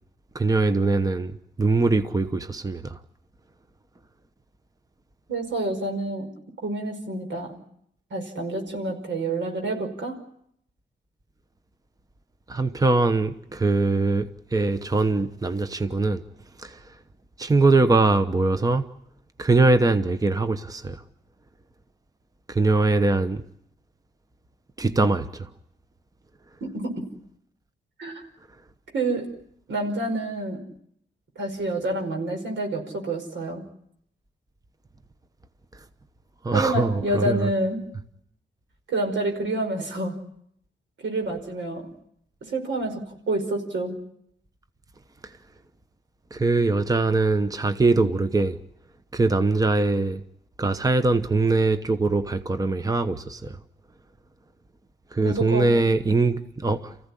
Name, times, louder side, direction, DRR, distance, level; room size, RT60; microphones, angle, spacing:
voice 1, 0.3-1.3 1.6-3.0 12.5-16.2 16.6-16.8 17.4-18.8 19.4-21.0 22.5-23.4 24.8-25.5 36.4-37.5 46.3-48.6 49.1-50.2 50.6-53.6 55.1-56.9, right 3 dB, 20° right, 1.0 m, -22 dB
voice 2, 5.3-6.3 6.6-7.6 8.1-10.2 26.6-26.7 27.0-27.1 28.0-28.3 28.9-29.3 29.7-30.6 31.4-33.6 36.5-37.8 38.9-40.1 41.0-41.9 42.5-44.0 55.2-55.7, right 2 dB, 90° right, 5.3 m, -28 dB
28.5 x 15.5 x 10.0 m
wide cardioid pair, 115°, 19 cm